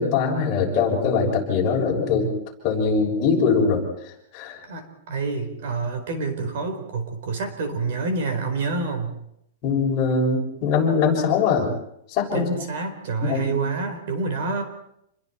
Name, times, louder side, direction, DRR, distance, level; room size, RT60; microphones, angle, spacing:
voice 1, 0.0-2.3 2.6-3.8 4.3-4.6 9.6-11.7 12.1-12.5 13.2-13.6, left 5 dB, 30° left, -2 dB, 6.7 m, -22 dB
voice 2, 4.7-9.1 12.3-14.6, right 3 dB, 55° right, 7 dB, 4.4 m, -27 dB
28.5 x 22.5 x 4.5 m, 0.76 s
supercardioid pair, 170°, 0 cm